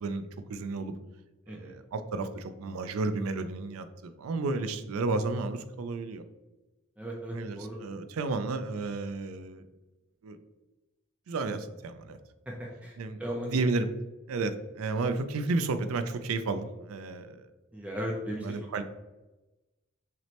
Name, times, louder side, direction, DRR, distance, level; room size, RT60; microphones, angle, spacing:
voice 1, 0.0-0.9 1.5-6.2 7.3-9.7 10.2-10.4 11.3-12.2 13.0-13.9 14.3-17.4 18.3-18.8, right 3 dB, 85° right, 10 dB, 0.4 m, -32 dB
voice 2, 7.0-7.8 12.5-13.6 17.7-18.8, equal, 5° right, -2 dB, 0.4 m, -37 dB
5.9 x 2.1 x 2.8 m, 1.1 s
head